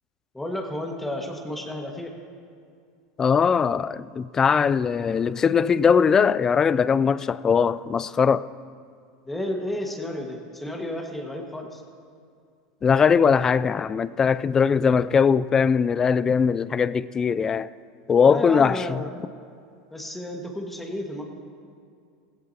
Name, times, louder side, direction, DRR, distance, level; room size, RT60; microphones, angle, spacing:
voice 1, 0.3-2.1 9.2-11.8 18.2-19.1 19.9-21.2, left 1 dB, 5° left, 1.7 m, -32 dB
voice 2, 3.2-8.5 12.8-17.7 18.1-19.0, left 6 dB, 25° left, 0.4 m, -20 dB
17.0 x 16.0 x 2.9 m
supercardioid pair, 110°, 2 cm